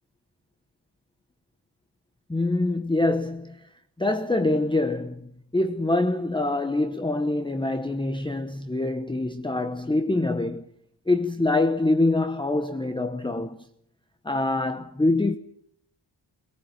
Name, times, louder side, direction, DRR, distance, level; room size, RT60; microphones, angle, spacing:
voice 1, 2.3-3.7 4.0-10.7 11.1-13.7 14.2-15.4, left 2 dB, 10° left, 0.9 m, -25 dB
22.0 x 18.5 x 9.1 m
wide cardioid pair, 105°, 45 cm